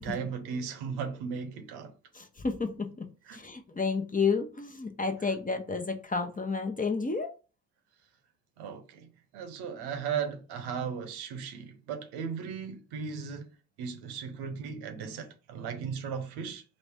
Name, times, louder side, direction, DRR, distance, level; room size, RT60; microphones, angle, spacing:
voice 1, 0.0-1.9 3.3-3.4 8.6-9.1 9.3-13.5 13.8-16.6, right 6 dB, 85° right, 0.8 m, -36 dB
voice 2, 2.1-3.1 3.3-7.3, left 4 dB, 20° left, 0.7 m, -31 dB
3.1 x 2.6 x 3.4 m
supercardioid pair, 60°, 39 cm